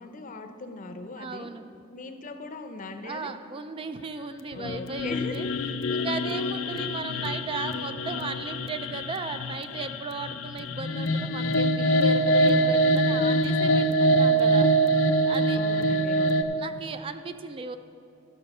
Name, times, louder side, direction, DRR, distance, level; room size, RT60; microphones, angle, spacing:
voice 1, 0.0-1.5 1.9-3.3 4.5-5.4 15.5-16.5, left 3 dB, 40° left, 7 dB, 0.6 m, -39 dB
voice 2, 1.2-1.7 3.0-5.5 5.9-14.7 14.9-15.6 16.6-17.8, right 4 dB, 25° right, 9 dB, 0.3 m, -36 dB
sound 1, 4.5-16.4, right 1 dB, 90° left, 0.5 m, -24 dB
12.5 x 6.4 x 5.4 m, 2.8 s
head